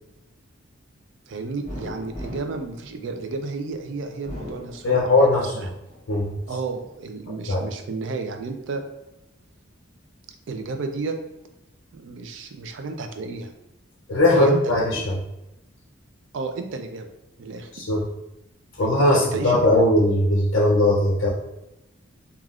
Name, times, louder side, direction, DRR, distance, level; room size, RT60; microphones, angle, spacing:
voice 1, 1.3-5.7 6.5-8.8 10.5-11.2 11.9-13.5 14.3-15.0 16.3-17.1 17.4-17.7 18.8-19.8, right 3 dB, 60° right, 6 dB, 0.3 m, -32 dB
sound 1, 1.6-3.6 4.1-5.4 5.9-6.8, left 1 dB, 40° right, 1.3 m, -38 dB
voice 2, 4.8-5.5 6.1-6.4 7.5-7.6 14.1-15.0 17.7-18.0 18.8-21.3, left 1 dB, 60° left, -3 dB, 0.5 m, -19 dB
3.3 x 2.3 x 2.4 m, 0.89 s
head